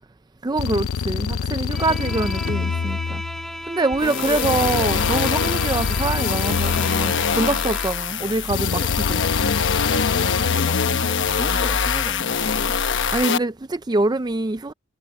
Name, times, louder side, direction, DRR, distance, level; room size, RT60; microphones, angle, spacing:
voice 1, 0.4-3.2 3.7-8.8 9.1-9.2 13.1-14.7, right 2 dB, 20° right, 0.5 m, -24 dB
sound 1, 0.6-3.7 4.4-7.7 8.5-11.3, left 6 dB, 85° left, 0.5 m, -27 dB
Bowed string instrument, 1.7-8.1, equal, ahead, 5.9 m, -35 dB
sound 2, 4.0-13.4, left 6 dB, 60° left, 1.1 m, -23 dB
voice 2, 4.0-4.8 8.2-8.9 9.9-12.8, left 2 dB, 30° left, 1.7 m, -34 dB
head